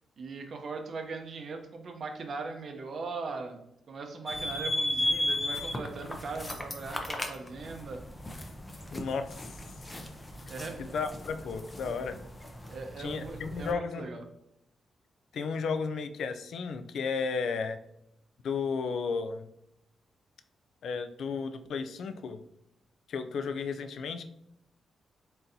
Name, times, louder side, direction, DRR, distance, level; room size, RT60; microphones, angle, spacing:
voice 1, 0.2-3.6 3.9-8.0 10.5-11.0 12.7-14.2, right 4 dB, 45° right, 4 dB, 0.6 m, -39 dB
sound 1, 4.3-13.7, left 1 dB, 15° left, 0.5 m, -35 dB
voice 2, 8.9-9.4 10.8-12.2 13.0-14.1 15.3-17.8 18.4-19.5 20.8-22.4 23.1-24.2, left 5 dB, 70° left, 9 dB, 0.4 m, -33 dB
4.2 x 3.8 x 2.6 m, 0.80 s
wide cardioid pair, 170°, 0 cm